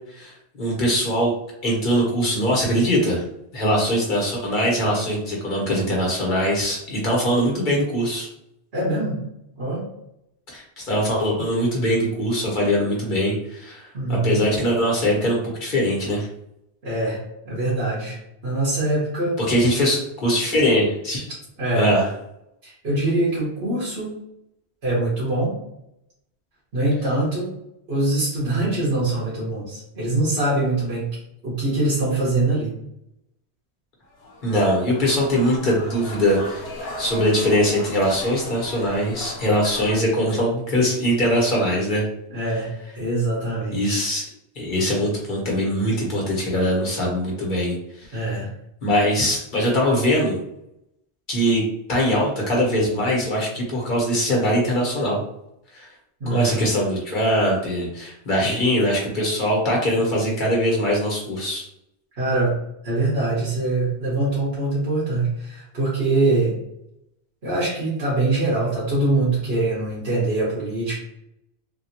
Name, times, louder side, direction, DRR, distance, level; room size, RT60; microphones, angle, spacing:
voice 1, 0.1-1.3 1.6-3.2 3.5-8.3 10.5-16.3 19.5-21.2 21.7-22.0 34.4-36.7 37.0-42.0 43.7-44.2 44.5-48.2 48.8-50.3 51.3-51.6 51.9-55.2 55.7-55.9 56.3-61.6, equal, 50° left, -3 dB, 1.3 m, -22 dB
voice 2, 8.7-9.2 9.6-9.8 11.3-11.4 13.9-14.4 16.8-19.4 21.6-21.9 22.6-24.2 24.8-25.5 26.7-27.5 27.9-32.7 42.3-42.7 42.9-44.0 48.1-48.5 56.2-56.7 58.4-58.5 62.2-62.5 62.8-66.5 67.4-71.0, right 2 dB, 75° right, -7 dB, 1.5 m, -23 dB
sound 1, 34.0-40.0, left 1 dB, 75° left, 1.0 m, -36 dB
3.5 x 2.6 x 2.8 m, 0.80 s
omnidirectional pair, 1.1 m